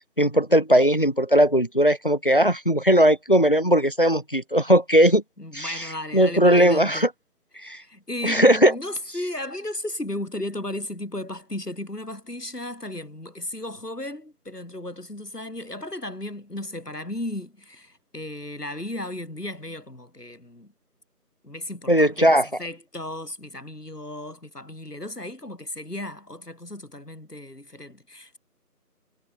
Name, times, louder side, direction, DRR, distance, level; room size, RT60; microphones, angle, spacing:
voice 1, 0.2-5.2 5.5-5.9 6.1-7.1 7.6-7.8 8.2-8.7 21.9-22.5, equal, 35° left, 0.9 m, -18 dB
voice 2, 5.4-7.0 7.6-20.7 21.4-28.4, left 1 dB, 75° left, 7.8 m, -35 dB
figure-of-eight pair, 175°, 47 cm